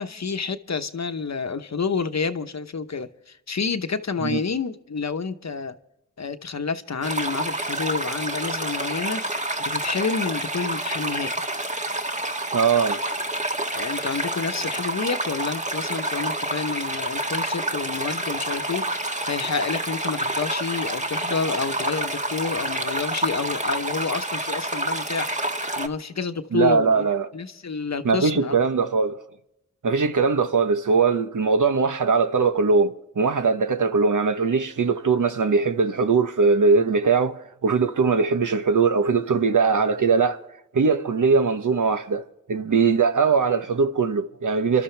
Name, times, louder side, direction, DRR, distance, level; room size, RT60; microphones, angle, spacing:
voice 1, 0.0-5.8 6.2-11.3 13.7-18.9 19.2-25.3 25.8-27.1 27.3-28.6, left 5 dB, 60° left, 1.0 m, -29 dB
sound 1, 7.0-25.9, right 1 dB, 25° right, 1.4 m, -28 dB
voice 2, 12.5-13.0 26.5-27.3 28.0-29.2 29.8-40.4 40.7-42.2 42.5-44.8, right 4 dB, 75° right, 1.0 m, -21 dB
27.0 x 12.5 x 3.4 m
cardioid pair, 40°, 31 cm